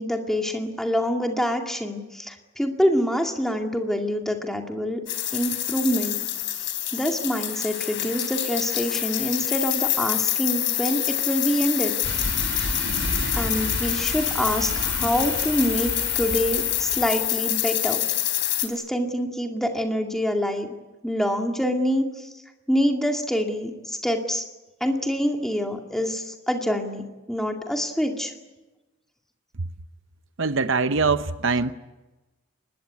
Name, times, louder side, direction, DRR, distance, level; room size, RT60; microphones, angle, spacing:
voice 1, 0.0-5.0 5.3-6.2 6.6-11.9 12.5-12.7 13.3-18.3 18.6-20.7 21.0-22.3 22.7-24.4 24.8-28.3, equal, ahead, 2.2 m, -26 dB
sound 1, 5.1-18.7, left 13 dB, 55° left, 3.6 m, -26 dB
sound 2, 12.0-17.2, right 2 dB, 75° right, 2.9 m, -32 dB
voice 2, 30.4-31.7, right 4 dB, 60° right, 0.8 m, -23 dB
24.0 x 20.5 x 9.4 m
head